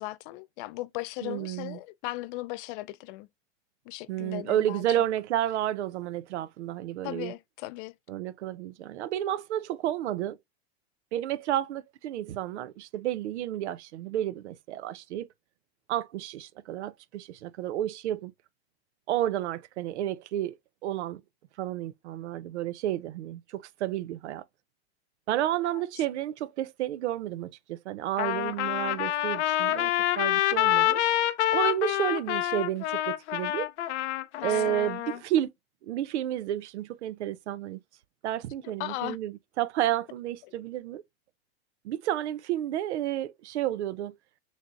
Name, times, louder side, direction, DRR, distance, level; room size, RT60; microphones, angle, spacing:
voice 1, 0.0-3.3 3.9-4.8 7.0-7.9 25.6-25.8 34.4-34.8 38.8-39.2, left 19 dB, 50° left, 0.5 m, -37 dB
voice 2, 1.2-1.8 4.1-7.3 8.1-10.4 11.1-15.3 15.9-18.3 19.1-20.6 20.8-21.2 21.6-24.4 25.3-31.0 31.5-33.7 34.4-35.5 35.8-37.8 38.2-41.0 41.8-44.2, right 12 dB, 85° right, 0.6 m, -31 dB
Trumpet, 28.2-35.2, left 13 dB, 85° left, 0.7 m, -27 dB
6.3 x 3.3 x 2.4 m
supercardioid pair, 120°, 33 cm